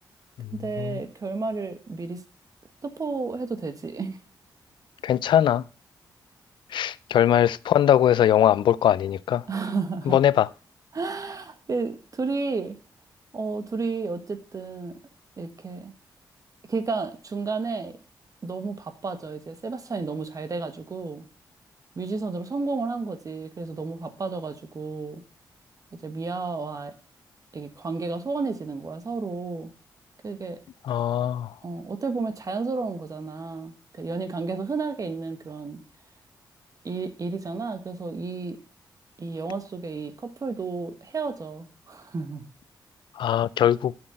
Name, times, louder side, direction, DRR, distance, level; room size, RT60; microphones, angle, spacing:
voice 1, 0.5-2.2 2.8-4.2 9.5-10.2 10.9-12.8 13.3-15.0 15.4-15.9 16.7-18.0 18.4-21.2 21.9-25.2 26.0-26.9 27.5-29.7 30.2-30.6 31.6-35.8 36.8-38.6 39.2-42.5, right 4 dB, 45° right, 1.3 m, -32 dB
voice 2, 5.0-5.6 6.7-9.4 10.1-10.5 30.8-31.5 43.2-43.9, left 10 dB, 80° left, 0.4 m, -21 dB
7.6 x 6.0 x 7.7 m
cardioid pair, 70°, 8 cm